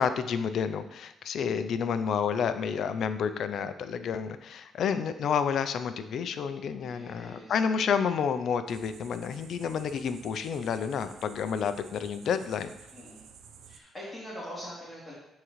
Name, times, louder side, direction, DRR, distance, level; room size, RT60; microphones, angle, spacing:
voice 1, 0.0-12.7, left 7 dB, 65° left, 11 dB, 0.4 m, -30 dB
voice 2, 6.8-7.9 10.9-11.1 12.9-13.3 13.6-15.1, equal, 15° left, -10 dB, 2.6 m, -43 dB
sound 1, 8.7-13.8, right 6 dB, 80° right, 0.6 m, -52 dB
11.0 x 3.8 x 3.1 m, 0.86 s
cardioid pair, 90°, 0 cm